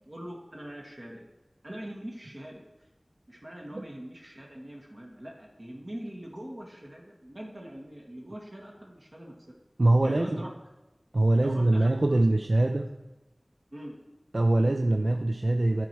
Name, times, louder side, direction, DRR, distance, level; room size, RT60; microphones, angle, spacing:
voice 1, 0.1-1.3 1.6-2.9 3.3-9.3 10.0-10.5 11.4-11.9 12.6-12.7 13.7-14.0, right 1 dB, 50° right, -2 dB, 1.4 m, -42 dB
voice 2, 9.8-10.4 11.1-13.0 14.3-15.9, right 2 dB, 65° right, 5 dB, 0.4 m, -23 dB
11.5 x 4.5 x 4.6 m, 1.0 s
wide cardioid pair, 45°, 0 cm